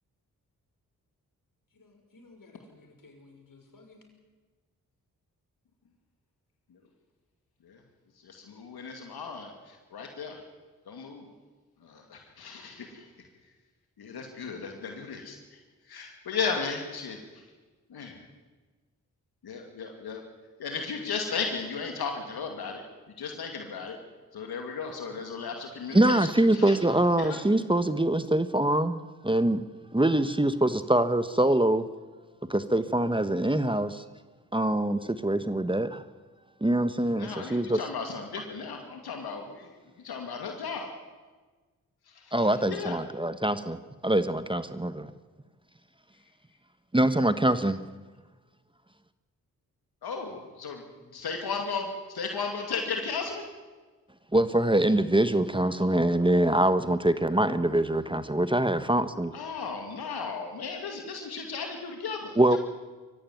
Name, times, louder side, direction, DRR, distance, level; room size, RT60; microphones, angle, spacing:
voice 1, 1.7-4.0 50.3-51.2, left 3 dB, 60° left, 4 dB, 6.1 m, -56 dB
voice 2, 8.2-10.4 10.9-11.3 11.8-13.3 14.0-15.6 15.9-17.4 17.9-18.2 19.4-20.2 20.6-22.8 23.2-24.0 24.3-26.8 27.2-27.4 37.1-39.7 40.0-40.9 42.1-43.0 50.0-50.8 51.1-53.5 59.3-62.6, left 5 dB, 80° left, 3 dB, 2.5 m, -35 dB
voice 3, 25.9-29.6 29.9-31.9 32.5-34.0 34.5-36.0 36.6-37.8 42.3-45.1 46.9-47.8 54.3-59.3 62.4-62.6, right 1 dB, 15° right, 11 dB, 1.2 m, -24 dB
23.0 x 15.5 x 9.3 m, 1.3 s
supercardioid pair, 45°, 37 cm